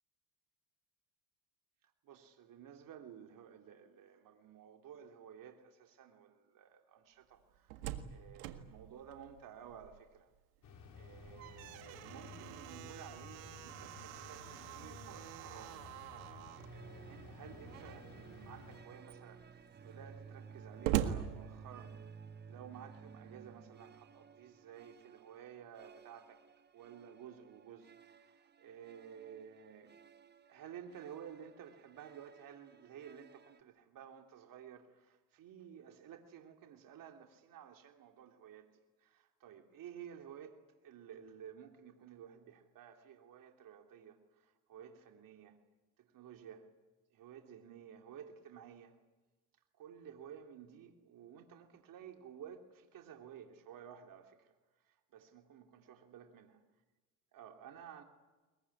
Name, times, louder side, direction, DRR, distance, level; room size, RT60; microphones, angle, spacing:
voice 1, 1.8-10.3 10.9-15.8 16.7-22.0 22.5-26.5 26.7-29.9 30.5-40.6 40.8-45.6 46.0-46.7 47.1-49.0 49.8-54.5 54.8-56.6 57.3-58.0, right 8 dB, 55° right, 3.1 m, -54 dB
Slam, 7.4-10.2 10.6-10.7 11.1-16.7 17.6-18.2 18.7-18.8 19.0-22.2, right 12 dB, 90° right, 1.8 m, -43 dB
sound 1, 10.6-18.8, left 4 dB, 55° left, 6.6 m, -54 dB
sound 2, 16.6-33.6, right 6 dB, 25° right, 1.3 m, -56 dB
22.5 x 22.0 x 10.0 m
supercardioid pair, 90°, 39 cm